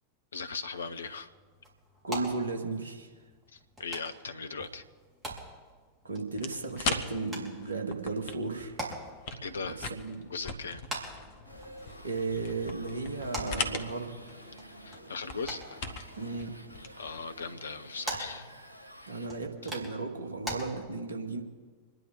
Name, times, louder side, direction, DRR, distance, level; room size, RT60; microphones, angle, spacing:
voice 1, 0.3-1.3 3.5-4.8 9.4-9.8 10.3-10.8 14.8-15.8 17.0-18.5, left 4 dB, 70° left, 10 dB, 1.0 m, -38 dB
sound 1, 0.7-20.6, right 1 dB, 15° right, 4.6 m, -45 dB
voice 2, 2.0-3.1 6.0-8.8 9.7-10.3 12.0-14.2 16.2-16.5 19.1-21.4, right 3 dB, 75° right, 3 dB, 2.0 m, -35 dB
sound 2, 6.3-17.5, left 4 dB, 50° left, 1.4 m, -40 dB
sound 3, 11.4-19.3, right 1 dB, 90° right, 2.3 m, -50 dB
27.0 x 10.5 x 4.0 m, 1.4 s
figure-of-eight pair, 90°, 0 cm